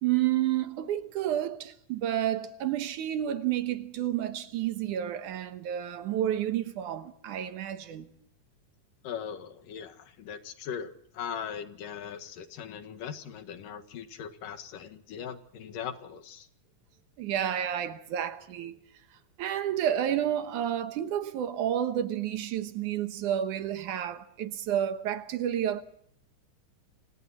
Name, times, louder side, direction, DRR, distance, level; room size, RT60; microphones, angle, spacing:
voice 1, 0.0-8.1 17.2-18.8 19.4-25.8, right 11 dB, 70° right, 2.6 m, -30 dB
voice 2, 9.0-16.5, left 8 dB, 85° left, 3.4 m, -40 dB
29.0 x 27.5 x 4.3 m
omnidirectional pair, 3.7 m